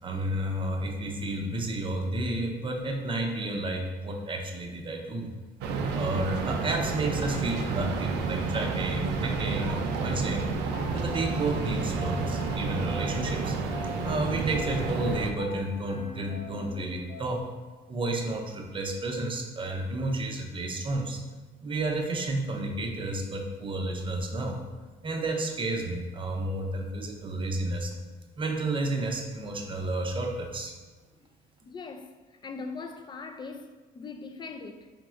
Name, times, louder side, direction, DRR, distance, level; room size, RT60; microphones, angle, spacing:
voice 1, 0.0-5.3 5.9-10.5 10.9-13.6 14.0-17.4 17.9-21.2 21.6-24.6 25.0-27.9 28.4-30.7, right 2 dB, 30° right, 0.6 m, -31 dB
sound 1, 5.6-15.3, right 4 dB, 85° right, 0.4 m, -30 dB
Piano, 10.7-17.6, left 3 dB, 60° left, 0.9 m, -43 dB
voice 2, 31.7-32.2 32.4-34.9, left 4 dB, 25° left, 0.4 m, -40 dB
5.0 x 3.0 x 2.4 m
cardioid pair, 110°, 17 cm